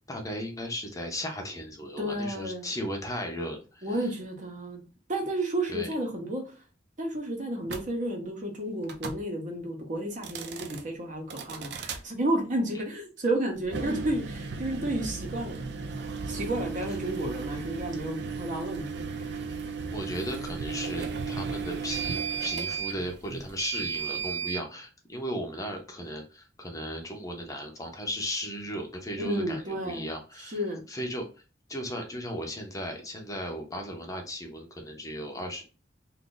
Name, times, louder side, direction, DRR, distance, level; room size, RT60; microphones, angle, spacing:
voice 1, 0.1-3.9 5.7-5.9 19.9-30.6 30.9-31.2 31.7-35.6, equal, 20° left, 2 dB, 0.6 m, -36 dB
voice 2, 2.0-2.7 3.8-4.8 5.1-6.6 7.0-15.6 16.2-18.9 19.2-19.4 29.2-30.1 30.4-30.8, right 1 dB, 45° right, 2 dB, 0.9 m, -32 dB
sound 1, 7.7-7.9 8.8-9.2 10.1-10.8 11.3-12.0 13.6-24.6, right 5 dB, 65° right, 0.4 m, -35 dB
2.6 x 2.5 x 3.8 m, 0.34 s
head